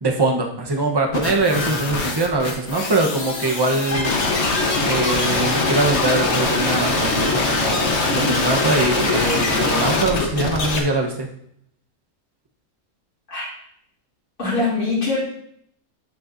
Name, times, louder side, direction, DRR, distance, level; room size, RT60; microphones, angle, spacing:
voice 1, 0.0-4.2 4.8-11.3, right 2 dB, 20° right, 1 dB, 1.0 m, -22 dB
sound 1, 1.1-10.8, left 3 dB, 50° left, 1.5 m, -22 dB
voice 2, 14.4-15.2, left 3 dB, 90° left, -7 dB, 3.7 m, -22 dB
11.5 x 6.5 x 2.7 m, 0.70 s
omnidirectional pair, 1.5 m